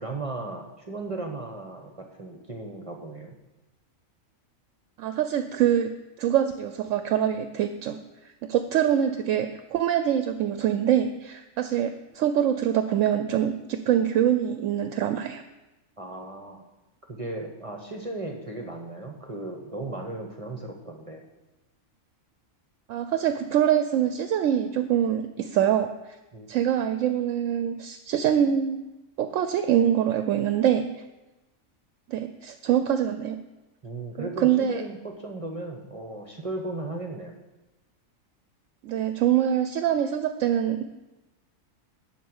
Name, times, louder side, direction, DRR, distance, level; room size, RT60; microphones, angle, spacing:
voice 1, 0.0-3.4 16.0-16.6 17.1-21.3 26.3-26.5 33.8-37.4, right 2 dB, 30° right, 2 dB, 0.9 m, -36 dB
voice 2, 5.0-5.9 6.2-8.0 8.5-15.4 22.9-25.9 26.5-28.8 29.2-31.0 32.1-33.4 34.2-34.8 38.8-40.9, right 10 dB, 75° right, 8 dB, 0.9 m, -24 dB
12.0 x 4.2 x 7.9 m, 1.0 s
omnidirectional pair, 1.4 m